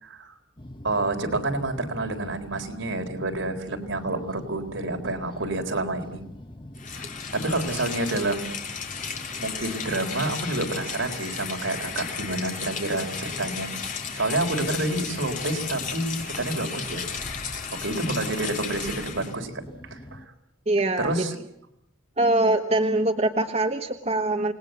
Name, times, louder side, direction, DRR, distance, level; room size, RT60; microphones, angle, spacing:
sound 1, 0.6-20.3, left 1 dB, 25° left, 1.3 m, -43 dB
voice 1, 0.8-6.2 7.3-8.5 9.4-13.7 14.1-17.0 17.7-19.5 19.9-20.2 21.0-21.3, right 2 dB, 70° right, 4 dB, 4.1 m, -28 dB
Rain, 6.7-19.3, left 6 dB, 40° left, 3.2 m, -34 dB
voice 2, 20.7-21.1 22.2-24.5, right 2 dB, 30° right, 4 dB, 1.3 m, -23 dB
28.5 x 19.5 x 8.0 m, 0.78 s
head